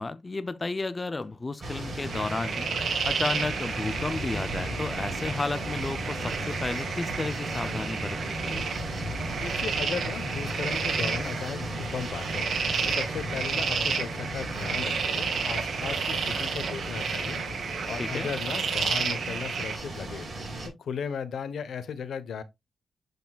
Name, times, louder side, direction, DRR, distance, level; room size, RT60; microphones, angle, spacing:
voice 1, 0.0-2.7 3.0-8.7 18.0-18.3, left 3 dB, 25° left, 0.6 m, -33 dB
sound 1, 1.6-20.7, right 1 dB, 35° right, 5.2 m, -35 dB
sound 2, 2.1-19.8, right 6 dB, 65° right, 2.5 m, -32 dB
voice 2, 9.4-12.6 12.9-17.4 17.9-20.3 20.6-22.4, left 6 dB, 75° left, 1.1 m, -36 dB
8.1 x 6.9 x 2.4 m
wide cardioid pair, 135°, 0 cm